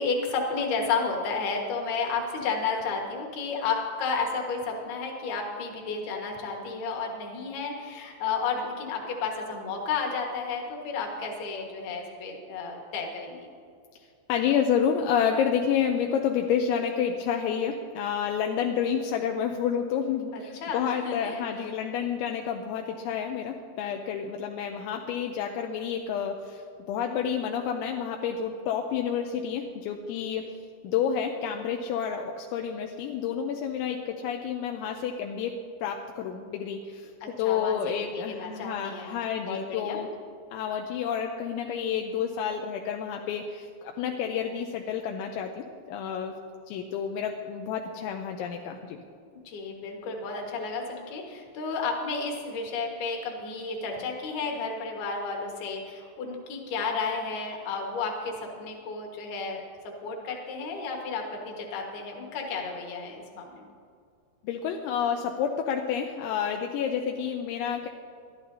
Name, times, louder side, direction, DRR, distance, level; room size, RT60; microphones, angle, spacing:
voice 1, 0.0-13.5 20.3-21.4 37.2-37.8 38.1-39.1 39.5-40.0 49.5-63.6, left 4 dB, 60° left, 1 dB, 3.1 m, -32 dB
voice 2, 14.3-26.6 26.9-30.5 30.8-35.5 35.8-37.1 37.4-40.1 40.5-46.3 46.7-49.0 64.4-67.9, left 8 dB, 85° left, 3 dB, 2.9 m, -29 dB
22.5 x 12.5 x 2.7 m, 2.2 s
omnidirectional pair, 5.7 m